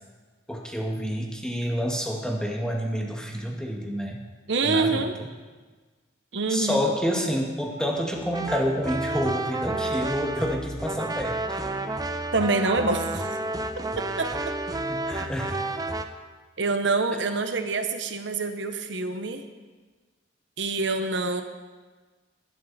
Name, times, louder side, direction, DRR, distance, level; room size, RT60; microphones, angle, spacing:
voice 1, 0.5-4.2 4.6-5.0 6.5-11.6 14.9-15.6, equal, 5° left, -1 dB, 1.9 m, -28 dB
voice 2, 4.5-5.2 6.3-6.8 12.3-13.3 14.0-14.5 16.6-19.5 20.6-21.4, right 3 dB, 70° right, 7 dB, 1.0 m, -26 dB
sound 1, 8.1-16.0, right 2 dB, 20° right, 0.7 m, -30 dB
19.5 x 11.0 x 4.3 m, 1.4 s
head